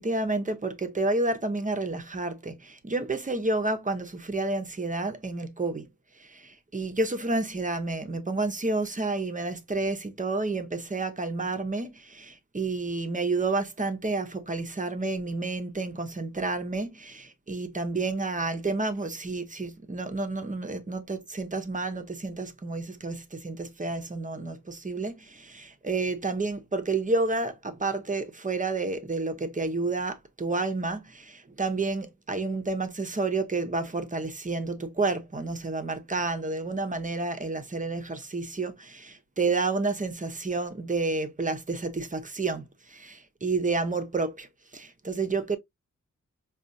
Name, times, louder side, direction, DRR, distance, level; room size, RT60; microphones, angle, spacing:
voice 1, 0.0-5.9 6.2-44.5 44.7-45.6, right 3 dB, 25° right, 0.7 m, -30 dB
4.9 x 2.4 x 2.6 m
wide cardioid pair, 85°, 30 cm